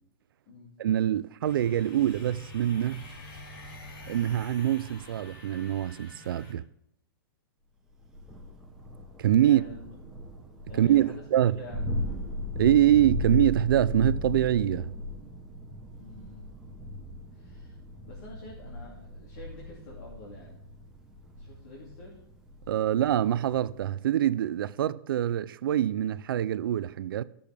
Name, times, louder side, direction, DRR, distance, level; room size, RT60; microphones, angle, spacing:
voice 1, 0.8-3.0 4.1-6.6 9.2-9.6 10.8-11.6 12.6-14.9 22.7-27.2, right 11 dB, 70° right, 0.4 m, -25 dB
sound 1, 1.4-6.5, left 1 dB, 65° left, 3.6 m, -46 dB
Thunder, 8.0-23.8, left 2 dB, 5° right, 0.9 m, -37 dB
voice 2, 9.4-9.8 10.7-11.2 11.6-12.0 16.0-16.5 17.3-20.5 21.4-22.2, left 1 dB, 45° left, 2.6 m, -47 dB
16.5 x 6.8 x 3.5 m
supercardioid pair, 175°, 12 cm